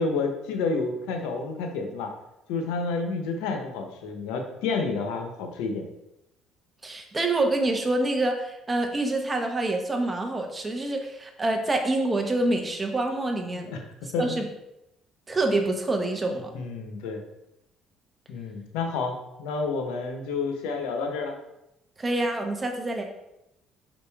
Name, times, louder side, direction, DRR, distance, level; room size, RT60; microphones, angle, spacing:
voice 1, 0.0-2.1 2.5-5.8 13.5-13.8 14.1-14.4 16.5-17.2 18.3-21.3, left 4 dB, 90° left, 4 dB, 0.9 m, -29 dB
voice 2, 6.8-13.7 14.2-14.5 15.3-16.5 22.0-23.1, right 2 dB, 20° right, 4 dB, 1.0 m, -26 dB
5.3 x 5.1 x 3.5 m, 0.88 s
cardioid pair, 100°, 0 cm